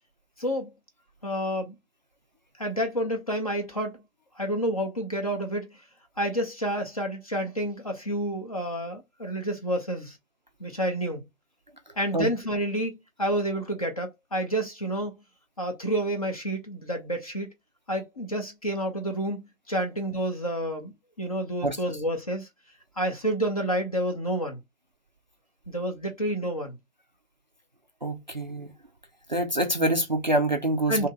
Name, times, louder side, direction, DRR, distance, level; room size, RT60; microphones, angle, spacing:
voice 1, 0.4-0.7 1.2-1.7 2.6-4.0 4.4-5.8 6.2-10.2 10.6-11.2 12.0-15.1 15.6-17.5 17.9-19.4 19.7-20.9 21.2-22.5 23.0-24.6 25.7-26.8 30.9-31.1, right 1 dB, 25° left, 0.5 m, -29 dB
voice 2, 28.0-28.7 29.3-31.1, right 1 dB, 35° right, 0.4 m, -25 dB
2.8 x 2.7 x 3.7 m
figure-of-eight pair, 135°, 44 cm